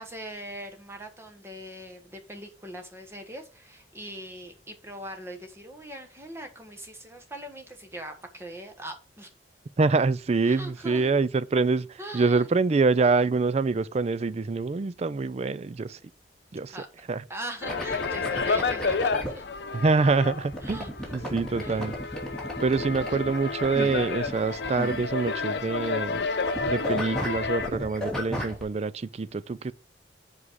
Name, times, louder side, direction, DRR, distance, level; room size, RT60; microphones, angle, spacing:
voice 1, 0.0-9.3 10.4-11.1 12.0-12.5 16.7-16.9 17.3-19.4 20.6-21.2 21.6-21.8, right 1 dB, 15° right, 1.4 m, -41 dB
voice 2, 9.8-16.0 16.5-16.8 17.1-17.2 19.7-20.9 21.1-21.9 22.6-26.2 26.7-29.7, right 4 dB, 35° right, 0.4 m, -25 dB
sound 1, 17.6-27.7, left 4 dB, 70° left, 0.7 m, -31 dB
sound 2, 17.7-19.3 20.5-26.2 26.4-28.6, equal, 5° left, 2.8 m, -34 dB
7.4 x 4.8 x 4.7 m
head